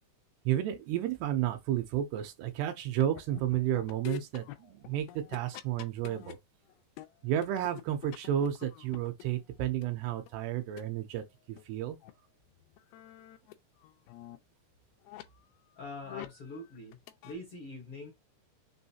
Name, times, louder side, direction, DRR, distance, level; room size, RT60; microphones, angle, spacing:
voice 1, 0.5-5.1 5.3-6.4 7.2-11.2 11.5-12.0, right 11 dB, 80° right, 2.7 m, -32 dB
sound 1, 2.9-6.3 6.7-9.9 10.3-10.4 10.8-10.9 11.2-11.3 11.6-11.7 12.0-12.1 12.4-13.5 13.8-14.4 15.0-15.2 15.8-16.5 16.8-17.3, left 15 dB, 80° left, 2.3 m, -46 dB
voice 2, 15.8-17.0 17.2-18.1, left 2 dB, 60° left, 1.5 m, -43 dB
6.2 x 2.5 x 2.8 m
omnidirectional pair, 4.8 m